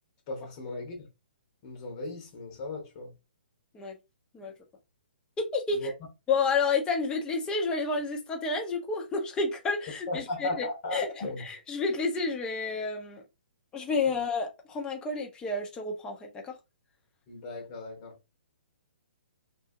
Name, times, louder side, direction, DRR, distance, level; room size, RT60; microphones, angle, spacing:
voice 1, 0.3-1.1 1.6-3.1 5.8-5.9 10.1-11.4 17.3-18.1, left 1 dB, 40° left, 1.0 m, -36 dB
voice 2, 5.4-5.9 6.3-10.7 10.9-13.2 13.7-16.5, left 4 dB, 15° left, 0.7 m, -30 dB
2.7 x 2.4 x 2.6 m
hypercardioid pair, 140°, 6 cm